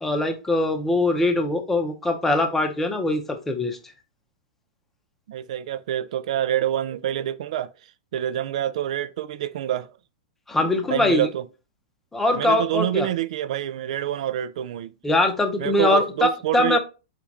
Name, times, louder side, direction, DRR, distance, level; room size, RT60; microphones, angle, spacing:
voice 1, 0.0-3.8 10.5-11.3 12.1-13.1 15.0-16.8, left 2 dB, 5° left, 0.7 m, -22 dB
voice 2, 5.3-7.7 8.1-9.9 10.9-11.4 12.3-14.9 15.6-16.8, right 11 dB, 65° right, 0.4 m, -26 dB
4.7 x 2.4 x 4.0 m
hypercardioid pair, 145°, 4 cm